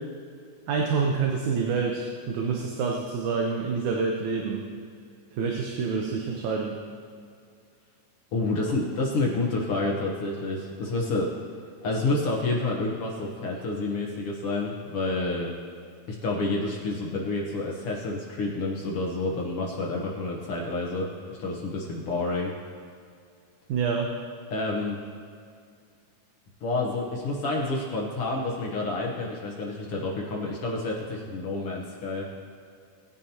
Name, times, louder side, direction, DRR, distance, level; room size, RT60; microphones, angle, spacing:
voice 1, 0.7-4.6 5.4-6.8 23.7-24.1, right 5 dB, 70° right, 0 dB, 2.2 m, -27 dB
voice 2, 8.3-11.3 11.8-15.5 16.1-22.5 24.5-25.0 26.6-32.3, left 2 dB, 60° left, -1 dB, 1.7 m, -29 dB
19.0 x 9.3 x 2.9 m, 2.3 s
omnidirectional pair, 3.7 m